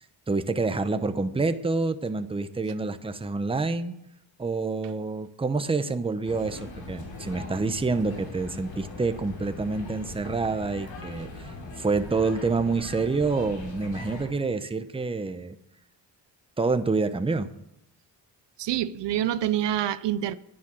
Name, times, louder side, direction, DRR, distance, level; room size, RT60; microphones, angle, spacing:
voice 1, 0.3-4.0 4.4-11.5 11.8-15.6 16.6-17.5, right 3 dB, 10° right, 0.8 m, -27 dB
sound 1, 6.2-14.3, left 3 dB, 85° left, 3.7 m, -40 dB
voice 2, 18.6-20.4, right 11 dB, 70° right, 0.7 m, -26 dB
10.5 x 10.0 x 7.5 m
cardioid pair, 120°, 44 cm